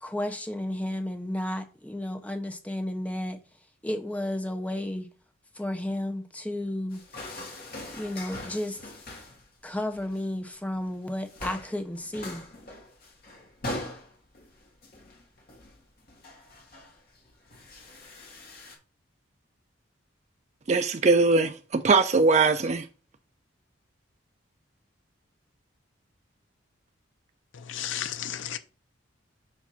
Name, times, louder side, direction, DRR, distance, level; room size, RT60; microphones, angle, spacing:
voice 1, 0.0-3.4 3.8-5.1 5.5-7.0 7.9-8.9 9.6-12.4, left 1 dB, 5° left, 0.7 m, -32 dB
sound 1, 6.9-9.5 9.7-10.2 10.7-11.0 11.2-18.8, left 1 dB, 50° left, 1.3 m, -42 dB
voice 2, 20.7-22.9, right 3 dB, 35° right, 0.4 m, -21 dB
voice 3, 27.7-28.6, left 10 dB, 70° left, 0.5 m, -33 dB
7.2 x 2.6 x 5.6 m
head